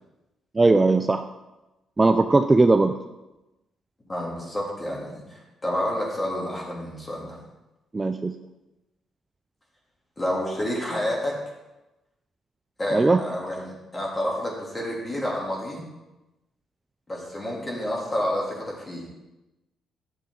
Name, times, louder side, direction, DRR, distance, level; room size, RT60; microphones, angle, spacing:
voice 1, 0.5-1.2 2.0-3.0 7.9-8.3 12.9-13.2, right 3 dB, 20° right, 8 dB, 0.4 m, -19 dB
voice 2, 4.1-7.4 10.2-11.3 12.8-15.8 17.1-19.1, left 1 dB, 20° left, -3 dB, 3.2 m, -29 dB
11.0 x 6.9 x 3.9 m, 1.0 s
cardioid pair, 90°, 0 cm